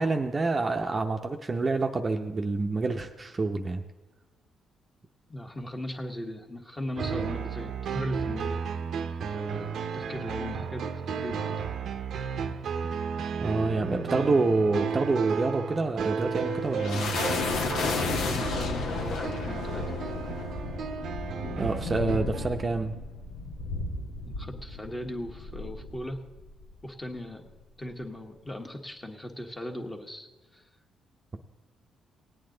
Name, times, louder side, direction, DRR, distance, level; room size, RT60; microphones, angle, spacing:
voice 1, 0.0-3.8 13.4-17.1 21.6-22.9, right 3 dB, 30° right, 4 dB, 0.7 m, -27 dB
voice 2, 5.3-8.6 9.3-11.6 17.8-19.8 24.3-26.2 26.8-27.4 27.8-30.3 30.5-30.6, left 1 dB, 20° left, 3 dB, 1.5 m, -38 dB
sound 1, 7.0-22.6, right 6 dB, 65° right, 0.7 m, -33 dB
sound 2, 16.2-26.8, left 3 dB, 85° left, 1.2 m, -33 dB
18.0 x 8.6 x 3.9 m, 1.1 s
cardioid pair, 80°, 0 cm